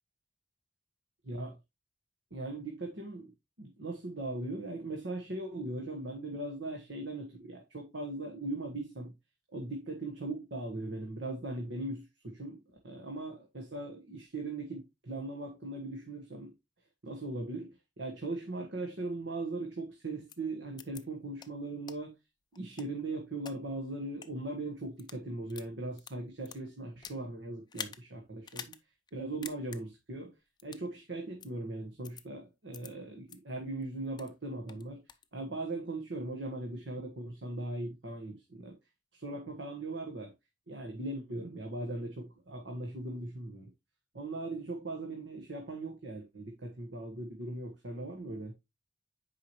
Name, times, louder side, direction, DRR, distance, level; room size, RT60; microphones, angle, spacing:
voice 1, 1.2-1.6 2.3-3.3 3.6-9.1 9.5-16.5 17.0-22.1 22.5-28.7 29.1-30.3 30.6-35.0 35.3-38.8 39.1-40.3 40.7-43.7 44.1-48.5, right 2 dB, 70° right, 1.4 m, -39 dB
sound 1, 20.3-20.4 20.8-21.0 21.4-21.5 21.9-22.0 22.5-23.5 24.1-24.3 24.9-25.2 25.5-27.2 27.7-28.0 28.4-28.8 29.1-29.2 29.4-29.8 30.6-30.9 31.4-31.5 32.0-32.2 32.7-32.9 33.3-33.4 33.8-34.3 34.7-35.3, left 7 dB, 25° left, 0.5 m, -45 dB
9.0 x 4.9 x 3.0 m
head